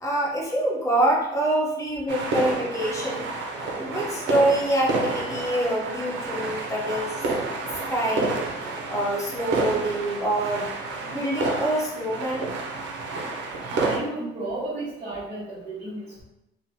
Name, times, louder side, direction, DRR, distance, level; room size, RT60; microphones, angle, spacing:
voice 1, 0.0-3.3 3.7-7.2 7.9-8.5 8.9-10.7 11.0-12.5, right 1 dB, 15° left, -5 dB, 0.8 m, -25 dB
sound 1, 2.1-14.0, right 3 dB, 80° right, 0.5 m, -29 dB
voice 2, 13.6-16.2, right 2 dB, 30° right, -10 dB, 0.9 m, -33 dB
2.8 x 2.1 x 2.6 m, 0.88 s
cardioid pair, 120°, 19 cm